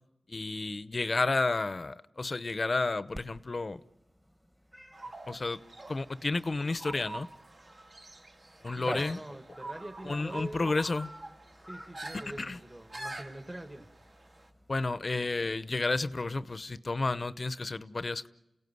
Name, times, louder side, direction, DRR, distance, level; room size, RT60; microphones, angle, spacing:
voice 1, 0.3-3.8 5.3-7.3 8.6-9.2 10.0-11.1 12.1-12.6 14.7-18.3, left 3 dB, 45° left, 0.8 m, -31 dB
Cat, 3.1-16.8, equal, 5° right, 1.5 m, -49 dB
sound 1, 4.9-14.5, right 2 dB, 50° right, 2.4 m, -46 dB
voice 2, 8.4-10.8 11.6-13.9, right 1 dB, 20° right, 1.9 m, -45 dB
29.5 x 17.5 x 9.5 m
cardioid pair, 55°, 0 cm